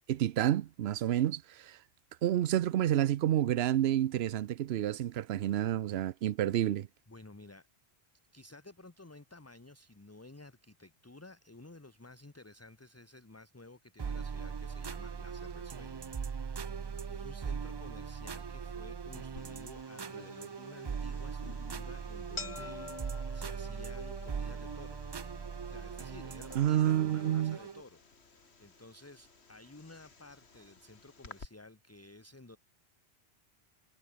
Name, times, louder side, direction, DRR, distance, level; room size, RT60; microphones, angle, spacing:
voice 1, 0.1-1.8 2.2-6.9 26.5-27.6, right 12 dB, 75° right, 0.9 m, -29 dB
voice 2, 7.1-7.7 8.3-16.4 17.1-25.0 25.7-28.0 28.6-32.6, left 2 dB, 15° left, 1.0 m, -53 dB
sound 1, 14.0-27.8, right 6 dB, 40° right, 0.4 m, -40 dB
sound 2, 19.4-31.4, left 4 dB, 85° left, 2.4 m, -51 dB
omnidirectional pair, 1.1 m